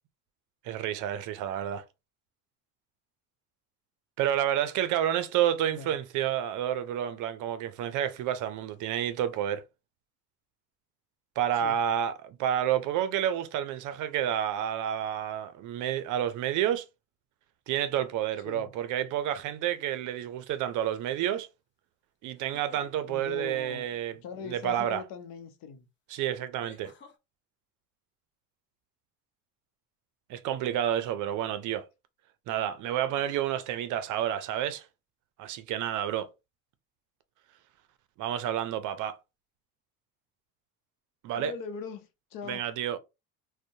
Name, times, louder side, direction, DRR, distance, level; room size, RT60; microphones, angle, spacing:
voice 1, 0.6-1.8 4.2-9.6 11.4-16.8 17.7-21.5 22.2-24.2 24.4-25.0 26.1-26.9 30.3-31.9 32.5-34.8 35.4-36.3 38.2-39.2 41.2-41.5 42.5-43.0, right 10 dB, 60° right, 0.5 m, -29 dB
voice 2, 5.6-6.0 11.5-11.8 18.4-18.7 23.1-25.9 41.3-42.6, left 6 dB, 70° left, 0.7 m, -41 dB
sound 1, 19.7-20.2 22.3-22.9 25.2-25.3 26.6-27.2, left 5 dB, 35° left, 0.6 m, -53 dB
2.6 x 2.1 x 2.6 m
cardioid pair, 110°, 35 cm